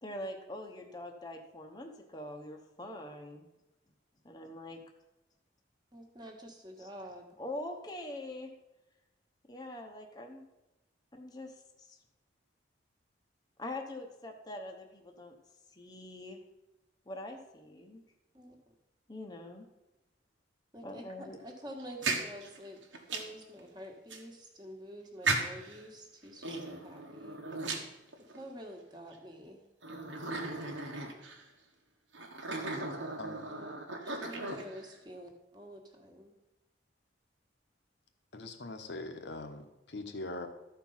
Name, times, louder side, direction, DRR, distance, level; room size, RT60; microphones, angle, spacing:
voice 1, 0.0-3.5 4.2-4.8 6.8-6.9 7.4-8.5 9.5-10.5 11.1-12.0 13.6-15.3 15.7-16.4 17.1-18.0 19.1-19.7 20.8-21.4, left 1 dB, 20° left, 2 dB, 0.9 m, -43 dB
voice 2, 5.9-7.3 18.3-18.6 20.7-27.4 28.3-29.6 33.4-33.7 34.0-36.3, equal, 25° right, 2 dB, 1.4 m, -48 dB
sound 1, 21.8-23.4 24.1-24.2 25.2-25.8 26.4-28.5 29.1-29.2 29.8-31.4 32.1-34.9, right 3 dB, 85° right, 1.4 m, -36 dB
voice 3, 38.3-40.5, left 2 dB, 65° left, 7 dB, 1.0 m, -42 dB
13.0 x 4.6 x 5.6 m, 0.97 s
head